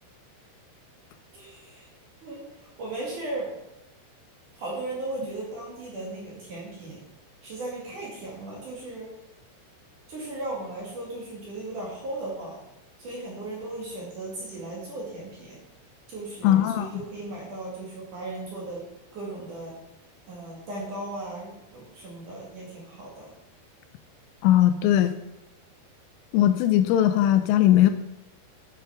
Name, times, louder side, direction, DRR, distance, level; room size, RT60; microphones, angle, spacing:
voice 1, 1.3-1.9 2.2-3.6 4.5-7.0 7.4-9.1 10.1-12.6 13.0-15.6 16.1-18.9 19.1-19.8 20.3-23.3, right 2 dB, 50° right, -4 dB, 3.0 m, -36 dB
voice 2, 16.4-17.0 24.4-25.1 26.3-27.9, left 12 dB, 85° left, 10 dB, 3.0 m, -19 dB
10.5 x 6.9 x 5.8 m, 0.92 s
omnidirectional pair, 5.8 m